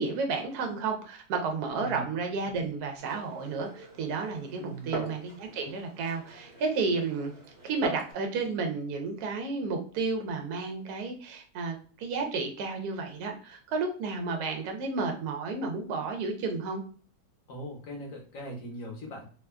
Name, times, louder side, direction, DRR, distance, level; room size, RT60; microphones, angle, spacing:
voice 1, 0.0-7.3 7.6-16.8, right 4 dB, 70° right, 3 dB, 1.1 m, -32 dB
Glass, 3.0-8.1, right 2 dB, 45° right, 0.9 m, -42 dB
voice 2, 4.6-5.0 17.5-19.2, right 1 dB, 60° left, 0 dB, 0.9 m, -40 dB
2.9 x 2.3 x 2.2 m, 0.43 s
omnidirectional pair, 1.9 m